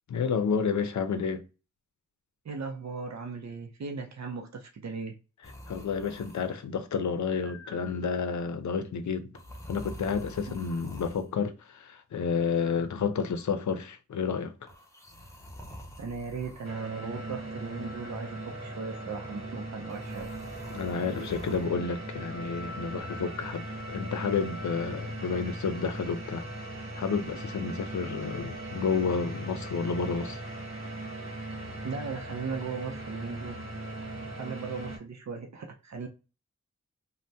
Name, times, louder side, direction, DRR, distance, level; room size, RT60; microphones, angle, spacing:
voice 1, 0.1-1.4 5.7-9.3 9.7-14.5 20.7-26.4 27.0-30.4, left 5 dB, 75° left, 0.5 m, -30 dB
voice 2, 2.4-5.1 10.5-10.6 16.0-20.3 31.8-33.6 34.3-36.1, right 5 dB, 65° right, 0.5 m, -37 dB
sound 1, 5.4-6.7 7.3-8.3 9.3-11.3 12.6-13.5 14.7-16.7 17.9-18.7 19.9-21.7 23.0-23.5, equal, 10° left, 0.6 m, -47 dB
sound 2, 16.6-35.0, right 1 dB, 45° right, 1.4 m, -39 dB
3.3 x 2.1 x 2.7 m
wide cardioid pair, 110°, 29 cm